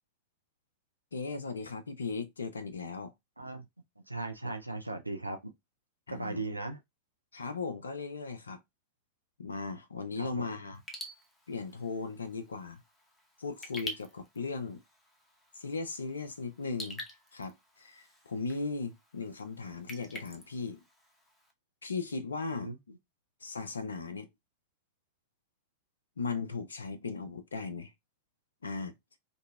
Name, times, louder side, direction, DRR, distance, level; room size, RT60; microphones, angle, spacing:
voice 1, 1.1-3.1 6.1-6.4 7.3-8.6 9.4-10.8 11.5-12.8 13.4-14.8 15.5-17.0 17.3-20.8 21.8-22.7 23.4-24.3 26.2-27.9 28.6-28.9, left 4 dB, 70° left, 0.4 m, -37 dB
voice 2, 4.1-5.4 6.1-6.8 10.2-10.5 22.6-22.8, right 2 dB, 85° right, 0.4 m, -37 dB
Raindrop / Drip, 10.7-21.5, left 1 dB, 15° left, 0.8 m, -48 dB
2.7 x 2.6 x 2.3 m
figure-of-eight pair, 90°, 0 cm